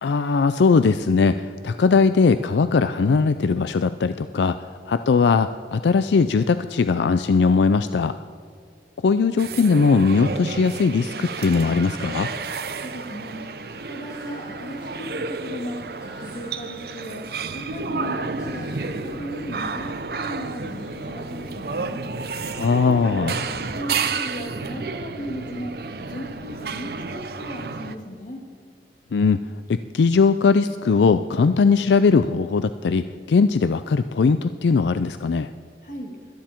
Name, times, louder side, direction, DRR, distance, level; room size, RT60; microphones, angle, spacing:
voice 1, 0.0-8.1 9.0-12.3 22.5-23.4 29.1-29.4 29.7-35.5, left 4 dB, 80° left, 11 dB, 0.4 m, -19 dB
sound 1, 9.4-28.0, right 4 dB, 60° right, 0.7 m, -31 dB
sound 2, 11.7-13.4 14.1-17.8 18.4-22.1, right 2 dB, 5° right, 4.0 m, -50 dB
voice 2, 12.8-15.8 16.0-22.0 23.0-25.7 26.0-28.4 35.8-36.1, equal, 45° left, 0 dB, 2.6 m, -36 dB
17.5 x 12.5 x 4.5 m, 2.2 s
head